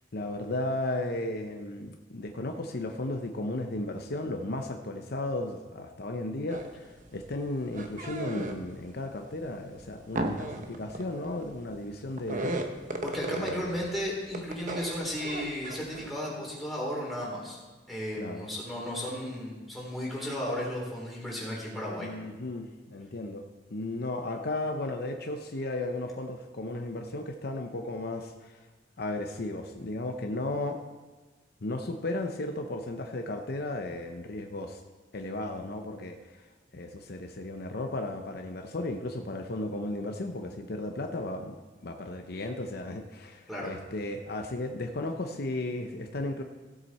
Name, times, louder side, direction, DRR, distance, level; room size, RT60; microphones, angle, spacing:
voice 1, 0.1-12.6 13.3-13.8 18.2-18.5 22.0-23.4 23.7-28.7 29.0-30.8 31.6-34.8 35.1-41.6 41.8-46.4, left 2 dB, 55° left, 5 dB, 0.7 m, -35 dB
sound 1, 6.5-6.8 7.1-8.8 9.3-13.9 14.2-16.1, right 2 dB, 45° right, 1.0 m, -35 dB
voice 2, 13.0-17.6 17.9-22.1 43.5-43.7, equal, ahead, -4 dB, 3.6 m, -34 dB
16.0 x 7.8 x 4.2 m, 1.3 s
head